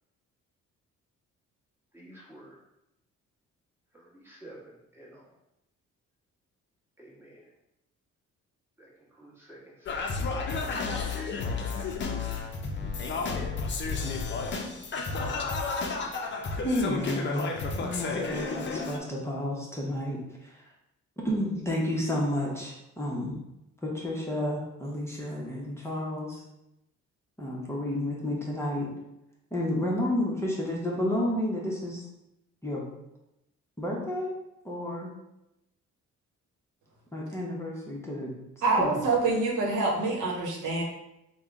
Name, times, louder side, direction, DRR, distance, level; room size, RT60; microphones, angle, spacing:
voice 1, 1.9-2.6 3.9-5.2 7.0-7.4 8.8-10.0 11.6-12.4, right 1 dB, 5° right, -5 dB, 1.2 m, -51 dB
Singing, 9.9-19.0, left 4 dB, 40° left, 0.5 m, -32 dB
voice 2, 16.6-17.5 17.8-20.6 21.2-23.4 23.8-26.4 27.4-28.9 29.5-32.0 32.6-32.8 33.8-34.3 34.6-35.1 37.1-38.3 38.8-38.9, left 1 dB, 10° left, -4 dB, 0.8 m, -31 dB
voice 3, 38.6-40.8, right 3 dB, 85° right, -1 dB, 1.0 m, -26 dB
3.5 x 2.2 x 3.5 m, 0.87 s
cardioid pair, 90°, 30 cm